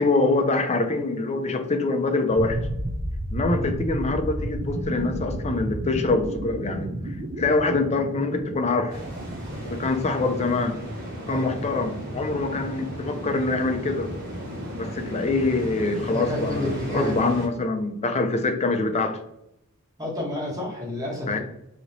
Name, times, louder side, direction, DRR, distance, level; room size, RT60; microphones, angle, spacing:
voice 1, 0.0-2.6 3.3-6.9 7.4-9.0 9.6-10.8 11.3-14.1 14.8-19.2 21.3-21.4, left 3 dB, 30° left, 6 dB, 0.5 m, -24 dB
sound 1, 2.3-11.2, right 1 dB, 30° right, 0.5 m, -32 dB
sound 2, 8.9-17.5, equal, 50° right, 1.2 m, -35 dB
voice 2, 11.2-11.5 15.9-17.3 20.0-21.4, left 1 dB, 15° right, -4 dB, 1.4 m, -30 dB
3.1 x 2.9 x 4.0 m, 0.80 s
head